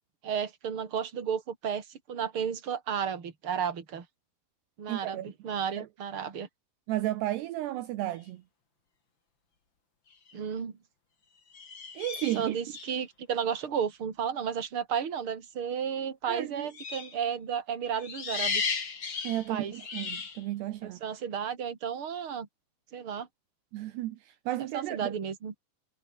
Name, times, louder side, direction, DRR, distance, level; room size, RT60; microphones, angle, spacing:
voice 1, 0.2-4.0 4.8-6.5 10.3-10.7 12.3-18.6 19.5-19.7 20.8-22.5 22.9-23.3 24.7-25.5, right 7 dB, 30° right, 3.4 m, -33 dB
voice 2, 4.9-5.3 5.8-5.9 6.9-8.4 12.0-12.6 16.3-16.7 19.2-21.0 23.7-25.2, right 15 dB, 75° right, 3.0 m, -33 dB
sound 1, 10.1-10.3 11.5-13.0 16.7-17.2 18.0-20.4, left 5 dB, 30° left, 2.9 m, -35 dB
omnidirectional pair, 5.2 m